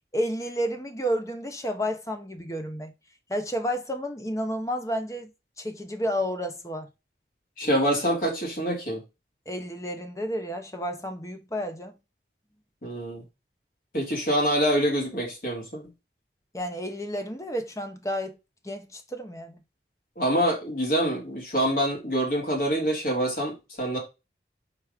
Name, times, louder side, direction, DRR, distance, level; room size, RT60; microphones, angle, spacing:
voice 1, 0.1-2.9 3.3-5.3 5.6-6.9 9.5-11.9 16.5-18.4 18.6-19.6, equal, 20° left, 1.0 m, -31 dB
voice 2, 7.6-9.0 12.8-13.2 13.9-15.8 20.2-24.0, equal, 50° left, 3.0 m, -25 dB
5.1 x 4.1 x 4.9 m
head